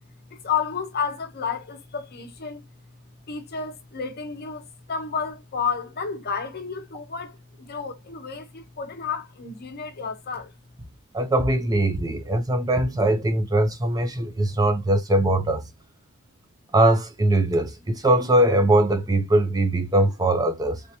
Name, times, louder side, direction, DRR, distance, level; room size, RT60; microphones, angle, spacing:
voice 1, 0.3-2.7 3.3-10.5, left 6 dB, 45° left, 0.8 m, -31 dB
voice 2, 11.1-15.6 16.7-20.8, right 1 dB, 15° right, 0.5 m, -21 dB
3.4 x 2.9 x 2.7 m
head